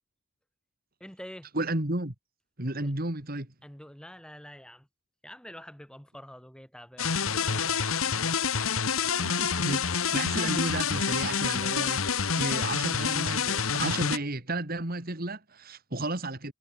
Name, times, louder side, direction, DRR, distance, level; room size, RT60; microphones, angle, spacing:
voice 1, 1.0-1.5 2.8-2.9 3.6-4.9 5.2-8.0, equal, 5° left, 2.6 m, -47 dB
voice 2, 1.5-2.1 2.6-3.5 9.2-12.0 12.4-16.5, right 2 dB, 45° right, 2.6 m, -33 dB
sound 1, 7.0-14.2, left 6 dB, 75° left, 1.7 m, -27 dB
head